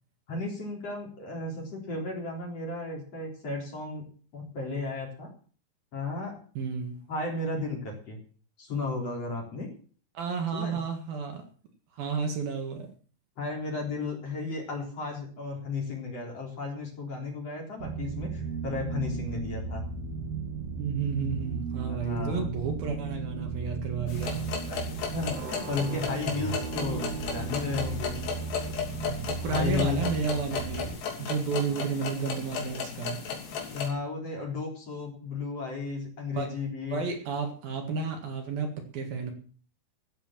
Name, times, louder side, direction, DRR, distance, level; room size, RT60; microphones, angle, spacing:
voice 1, 0.3-4.0 4.3-5.3 5.9-6.4 7.1-8.2 8.6-9.7 10.5-10.8 13.4-19.8 21.9-22.5 24.7-28.2 29.5-30.0 31.7-31.8 33.7-37.0, left 3 dB, 35° left, 0 dB, 4.6 m, -34 dB
voice 2, 6.6-7.0 10.2-11.4 11.9-12.9 20.8-24.4 28.7-33.2 36.3-36.5 36.9-39.3, right 5 dB, 60° right, 4 dB, 3.5 m, -32 dB
sound 1, 17.8-30.9, right 5 dB, 45° right, 2.5 m, -35 dB
sound 2, 24.1-33.9, left 6 dB, 75° left, 5.0 m, -35 dB
14.5 x 8.6 x 7.5 m, 0.42 s
omnidirectional pair, 4.9 m